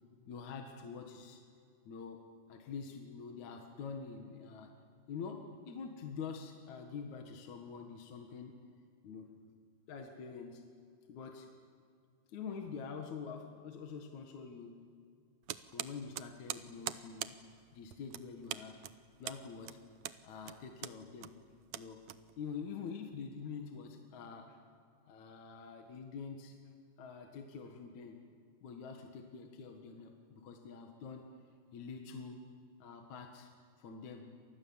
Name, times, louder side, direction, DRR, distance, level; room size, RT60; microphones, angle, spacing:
voice 1, 0.3-1.4 1.9-2.2 2.5-4.7 5.1-8.5 9.0-9.3 9.9-10.6 11.1-11.5 12.3-14.8 15.7-18.8 19.2-19.8 20.2-21.3 21.7-22.0 22.4-24.6 25.1-26.6 27.0-28.2 28.6-31.3 31.7-32.4 32.8-33.5 33.8-34.3, left 5 dB, 60° left, 3 dB, 2.8 m, -46 dB
sound 1, 15.5-22.7, right 12 dB, 75° right, 1.6 m, -44 dB
29.0 x 26.5 x 7.2 m, 2.2 s
omnidirectional pair, 4.0 m